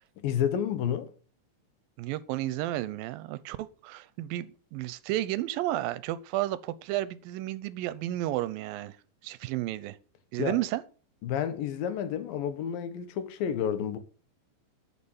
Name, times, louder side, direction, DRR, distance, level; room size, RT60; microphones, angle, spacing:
voice 1, 0.2-1.1 10.4-10.6 11.2-14.0, left 9 dB, 80° left, 2.9 m, -30 dB
voice 2, 2.0-9.0 9.2-10.0 10.3-10.8, right 15 dB, 85° right, 2.4 m, -32 dB
9.8 x 6.7 x 7.2 m
omnidirectional pair, 4.1 m